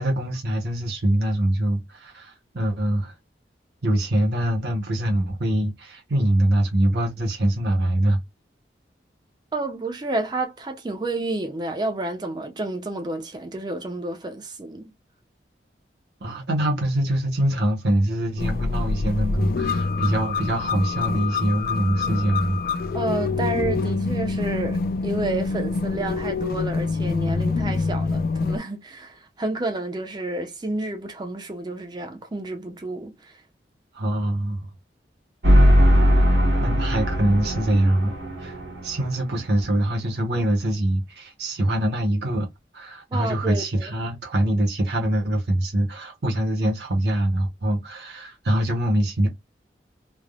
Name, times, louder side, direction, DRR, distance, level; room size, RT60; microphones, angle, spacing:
voice 1, 0.0-3.1 3.8-8.2 16.2-22.6 33.9-34.7 36.6-42.5 42.7-49.3, right 1 dB, 70° right, 0.8 m, -24 dB
voice 2, 9.5-14.9 22.9-33.4 43.1-43.9, right 2 dB, 25° right, 0.4 m, -30 dB
sound 1, 18.4-28.6, left 4 dB, 55° left, 0.3 m, -26 dB
sound 2, 35.4-39.5, equal, 90° right, 1.2 m, -19 dB
3.3 x 2.0 x 2.3 m
head